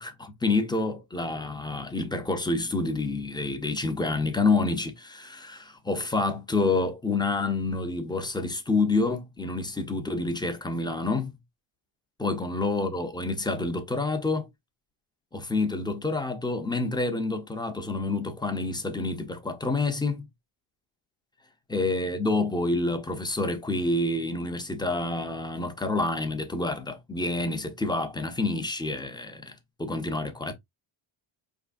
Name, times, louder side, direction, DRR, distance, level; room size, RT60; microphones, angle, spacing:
voice 1, 0.0-11.4 12.2-14.5 15.3-20.3 21.7-30.5, left 3 dB, 10° left, 0.5 m, -28 dB
4.8 x 3.5 x 2.5 m
cardioid pair, 145°, 49 cm